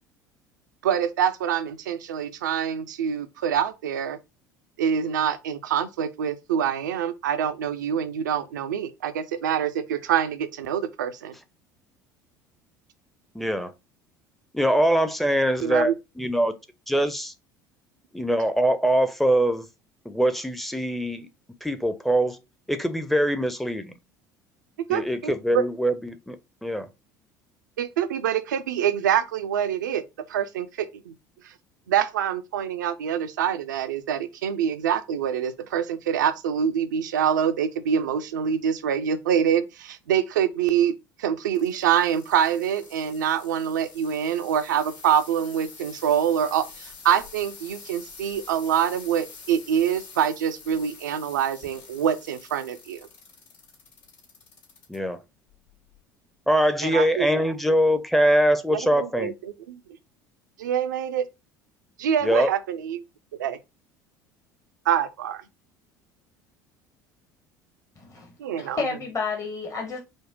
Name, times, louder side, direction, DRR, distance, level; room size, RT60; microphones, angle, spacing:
voice 1, 0.8-4.2 4.8-11.4 15.6-15.9 24.9-25.6 27.8-30.0 30.3-31.1 31.9-40.9 41.2-53.1 56.8-57.3 58.7-59.8 60.6-61.2 62.0-63.0 63.4-63.6 64.9-65.4 68.4-68.8, right 9 dB, 75° right, 0.5 m, -25 dB
voice 2, 13.3-13.7 14.5-16.5 16.9-17.3 18.1-19.7 20.1-21.3 21.6-22.4 22.7-23.9 24.9-26.4 26.6-26.9 54.9-55.2 56.5-59.3 62.2-62.5, equal, ahead, 0.6 m, -23 dB
sound 1, 41.5-55.0 55.5-55.9 56.6-56.7, left 5 dB, 65° left, 2.4 m, -47 dB
voice 3, 68.0-70.0, left 4 dB, 35° left, 1.1 m, -31 dB
5.2 x 2.1 x 3.7 m
figure-of-eight pair, 65°, 10 cm